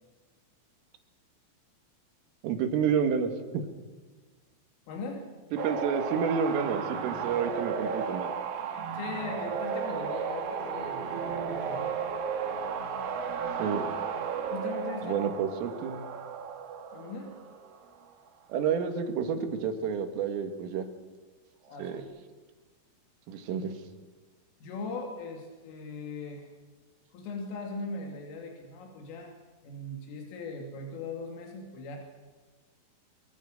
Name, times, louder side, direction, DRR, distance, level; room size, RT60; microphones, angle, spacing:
voice 1, 2.4-3.6 5.6-8.3 13.6-13.9 15.0-16.1 18.5-20.9 21.8-22.0 23.3-23.8, right 7 dB, 85° right, 7 dB, 4.6 m, -29 dB
voice 2, 4.9-5.2 8.9-11.9 14.0-14.1 14.5-15.3 16.9-17.3 21.7-22.0 24.6-26.5 27.1-29.4 29.6-32.0, left 3 dB, 85° left, 2 dB, 5.2 m, -39 dB
sound 1, 5.6-17.9 21.8-22.0, right 6 dB, 55° right, 3.3 m, -34 dB
25.0 x 24.0 x 6.7 m, 1.3 s
omnidirectional pair, 5.6 m